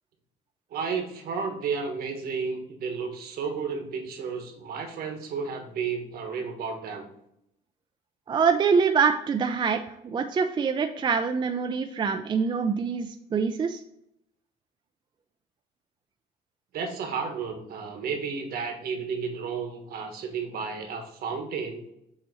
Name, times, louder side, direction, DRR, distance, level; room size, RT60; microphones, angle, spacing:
voice 1, 0.7-7.1 16.7-21.8, right 5 dB, 65° right, 4 dB, 1.4 m, -32 dB
voice 2, 8.3-13.8, right 6 dB, 30° right, 6 dB, 0.4 m, -25 dB
7.6 x 2.9 x 4.2 m, 0.78 s
cardioid pair, 110°, 17 cm